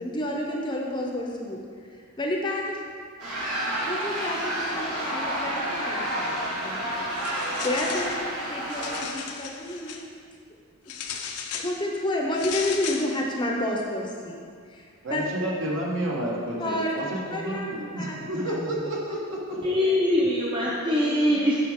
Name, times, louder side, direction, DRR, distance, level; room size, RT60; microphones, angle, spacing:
voice 1, 0.0-2.8 3.8-6.9 7.4-8.2 8.5-10.1 10.5-10.6 11.5-14.4 14.6-15.2 16.6-17.0 17.3-18.6 19.8-19.9, left 1 dB, 20° left, 0 dB, 0.6 m, -30 dB
sound 1, 3.2-9.0, right 1 dB, 80° right, 1.9 m, -30 dB
sound 2, 7.1-8.2 8.6-10.0 10.9-11.7 12.3-13.1, left 7 dB, 85° left, 0.6 m, -36 dB
voice 2, 15.0-19.7, right 1 dB, 60° right, -4 dB, 1.4 m, -30 dB
voice 3, 19.6-21.6, left 1 dB, 25° right, -5 dB, 0.6 m, -23 dB
8.5 x 6.0 x 3.6 m, 2.2 s
head